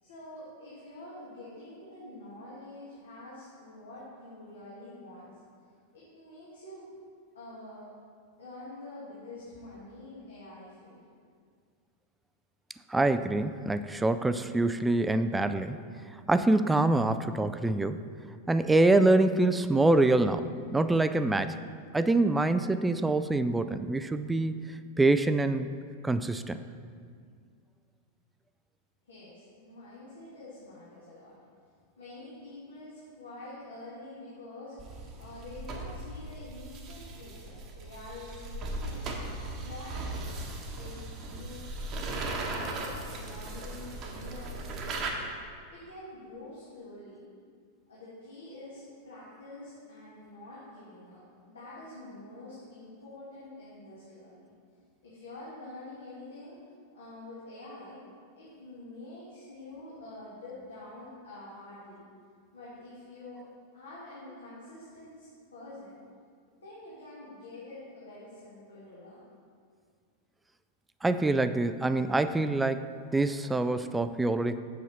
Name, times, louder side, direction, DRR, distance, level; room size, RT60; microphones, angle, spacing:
voice 1, 0.0-5.4 5.9-6.9 7.3-7.9 8.4-11.0 29.0-31.4 32.0-34.8 35.2-40.3 40.8-45.2 45.7-47.2 47.9-54.5 55.0-56.6 56.9-58.0 58.3-62.0 62.5-63.4 63.7-66.0 66.5-69.3, left 2 dB, 70° left, -8 dB, 1.9 m, -47 dB
voice 2, 12.9-15.8 16.3-18.0 18.5-21.6 21.9-24.6 25.0-25.7 26.0-26.6 71.0-74.6, right 2 dB, 10° right, 11 dB, 0.3 m, -25 dB
sound 1, 34.8-45.1, right 2 dB, 35° right, 1.0 m, -38 dB
7.2 x 6.9 x 4.3 m, 2.1 s
figure-of-eight pair, 90°, 0 cm